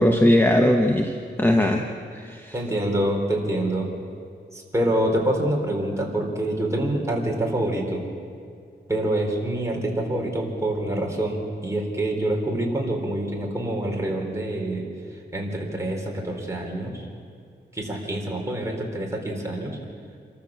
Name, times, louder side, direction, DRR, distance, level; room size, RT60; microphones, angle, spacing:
voice 1, 0.0-1.8 2.1-2.5, left 1 dB, 10° left, 3 dB, 1.1 m, -20 dB
voice 2, 2.5-3.9 4.5-8.0 8.9-14.9 15.3-17.1 17.7-19.8, right 1 dB, 15° right, 0 dB, 4.0 m, -26 dB
26.5 x 14.0 x 7.5 m, 2.2 s
wide cardioid pair, 120°, 19 cm